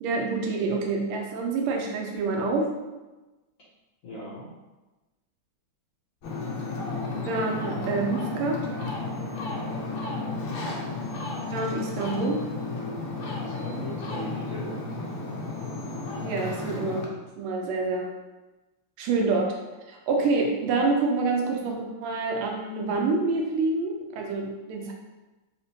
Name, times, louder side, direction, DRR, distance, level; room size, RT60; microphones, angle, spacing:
voice 1, 0.0-2.7 7.2-8.6 11.5-12.4 16.2-17.0 17.4-18.1 19.0-19.5 19.9-24.9, right 3 dB, 90° right, 1 dB, 1.5 m, -27 dB
voice 2, 4.0-4.5 9.9-10.5 13.2-14.9, equal, 60° left, -9 dB, 0.9 m, -38 dB
Ocean, 6.2-17.1, left 3 dB, 80° left, 1.3 m, -33 dB
4.1 x 2.2 x 2.7 m, 1.1 s
omnidirectional pair, 2.3 m